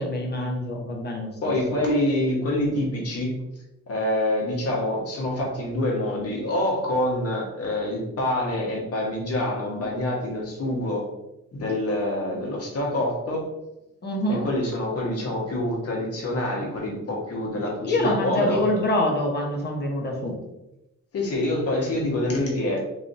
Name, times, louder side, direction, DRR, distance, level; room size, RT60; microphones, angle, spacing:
voice 1, 0.0-1.5 14.0-14.4 17.8-20.3, left 1 dB, 35° left, 0 dB, 1.0 m, -25 dB
voice 2, 1.4-3.3 3.9-11.0 11.5-13.5 14.3-18.8 21.1-22.8, left 1 dB, 50° left, -2 dB, 1.4 m, -26 dB
3.1 x 2.5 x 4.0 m, 0.91 s
cardioid pair, 90°, 30 cm